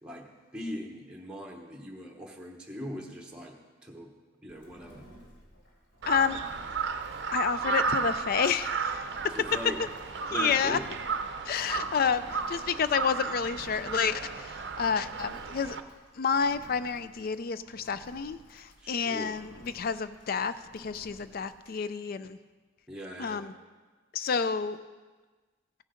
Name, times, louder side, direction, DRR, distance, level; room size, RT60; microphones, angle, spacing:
voice 1, 0.0-3.5 3.8-4.1 4.4-5.0 9.3-9.8 10.3-10.8 18.8-19.3 22.9-23.5, equal, 5° right, 0 dB, 1.0 m, -40 dB
Engine, 4.5-21.8, equal, 65° left, 3.3 m, -54 dB
Crow, 6.0-15.8, right 5 dB, 60° right, 0.6 m, -34 dB
voice 2, 6.1-6.4 7.3-9.0 10.3-10.8 11.5-15.8 16.2-22.4 23.2-23.5 24.1-24.8, left 6 dB, 50° left, 13 dB, 0.4 m, -29 dB
15.5 x 6.5 x 5.1 m, 1.3 s
head